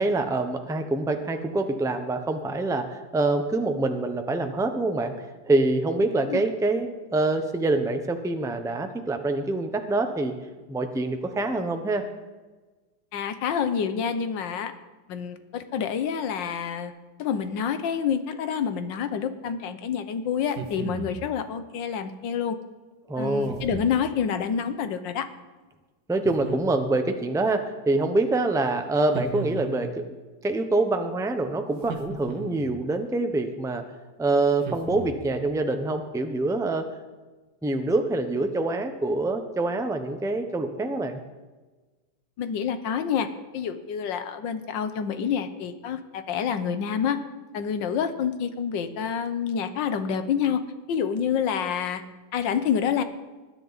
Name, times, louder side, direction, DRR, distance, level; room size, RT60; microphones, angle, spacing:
voice 1, 0.0-5.1 5.5-10.3 10.7-12.1 23.1-23.6 26.1-30.1 30.4-33.9 34.2-36.8 37.6-41.2, right 2 dB, 5° right, 6 dB, 0.3 m, -25 dB
voice 2, 13.1-14.7 15.1-16.9 17.2-22.6 23.2-25.3 42.4-43.3 43.5-47.2 47.5-50.6 50.9-52.0 52.3-53.0, left 7 dB, 90° left, 10 dB, 1.6 m, -28 dB
sound 1, 20.4-21.3 23.5-24.1 26.2-27.0 29.1-30.0 31.8-32.8 34.6-35.4, right 5 dB, 80° right, 1.7 m, -36 dB
20.5 x 9.8 x 4.1 m, 1.3 s
omnidirectional pair, 1.9 m